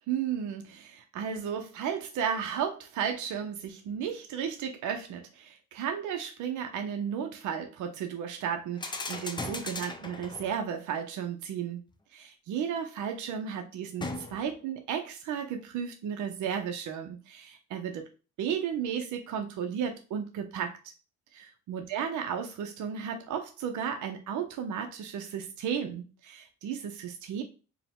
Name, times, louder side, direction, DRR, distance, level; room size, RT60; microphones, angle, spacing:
voice 1, 0.1-11.8 12.1-18.0 18.4-20.7 21.3-27.4, right 8 dB, 75° right, 5 dB, 0.6 m, -34 dB
sound 1, 8.7-10.7 14.0-14.7, left 2 dB, 15° left, 0.6 m, -38 dB
4.6 x 2.1 x 3.6 m, 0.34 s
cardioid pair, 90°, 30 cm